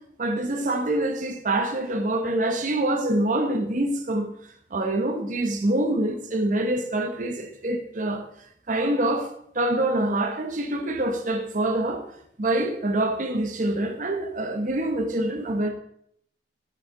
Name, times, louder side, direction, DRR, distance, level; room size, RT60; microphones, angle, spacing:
voice 1, 0.2-4.3 4.7-8.3 8.7-9.3 9.5-12.1 12.4-15.7, right 1 dB, 45° right, 0.8 m, -25 dB
8.5 x 7.0 x 3.7 m
head